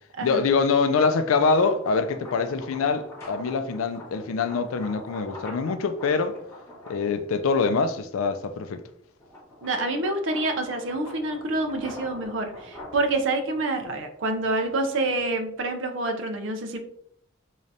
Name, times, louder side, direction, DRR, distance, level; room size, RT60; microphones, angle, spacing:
voice 1, 0.2-6.4 6.9-8.8, left 4 dB, 80° left, 0.4 m, -24 dB
sound 1, 1.4-7.8 8.4-15.6, left 1 dB, 15° left, 1.6 m, -44 dB
voice 2, 9.6-16.8, right 2 dB, 60° right, 0.6 m, -27 dB
3.8 x 3.2 x 2.7 m
head